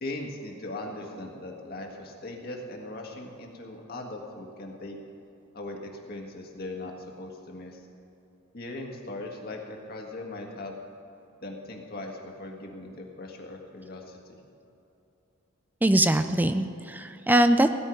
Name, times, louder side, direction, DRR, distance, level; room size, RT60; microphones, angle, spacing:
voice 1, 0.0-5.0 5.5-5.8 6.1-6.9 7.2-7.8 8.5-10.7 11.4-14.4, left 2 dB, 45° left, 1 dB, 1.8 m, -39 dB
voice 2, 15.8-17.7, right 1 dB, 10° right, 9 dB, 0.4 m, -22 dB
16.5 x 5.6 x 9.2 m, 2.8 s
head